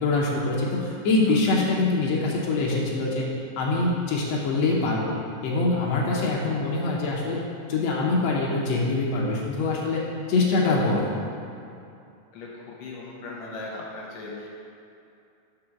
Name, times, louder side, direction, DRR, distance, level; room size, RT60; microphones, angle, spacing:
voice 1, 0.0-3.3 3.6-5.2 5.4-7.4 7.7-10.0 10.3-11.1, left 3 dB, 90° left, -4 dB, 1.4 m, -24 dB
voice 2, 12.3-14.5, left 2 dB, 65° left, -3 dB, 1.8 m, -38 dB
5.1 x 4.8 x 5.9 m, 2.6 s
omnidirectional pair, 4.2 m